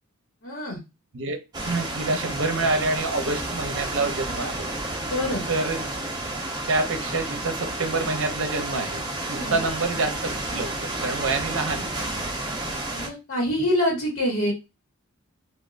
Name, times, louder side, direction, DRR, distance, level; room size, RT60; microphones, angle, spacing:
voice 1, 0.4-0.8 5.0-5.4 9.3-9.6 12.9-14.5, left 1 dB, 55° left, 1.3 m, -26 dB
voice 2, 1.1-4.7 5.5-5.8 6.7-12.3, right 3 dB, 60° right, 0.8 m, -27 dB
sound 1, 1.5-13.1, right 2 dB, 20° right, 0.7 m, -31 dB
3.6 x 2.5 x 2.5 m
head